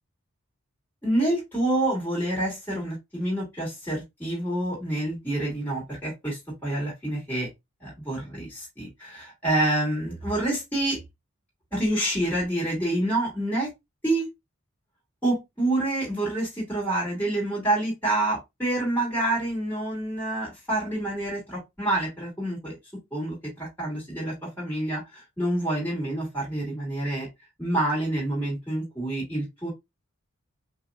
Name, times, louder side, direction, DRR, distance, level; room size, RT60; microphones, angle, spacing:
voice 1, 1.0-7.5 7.8-11.0 11.7-13.7 14.0-14.3 15.2-22.8 23.1-27.3 27.6-29.7, right 1 dB, 10° left, 2.6 m, -27 dB
5.5 x 2.9 x 2.5 m
head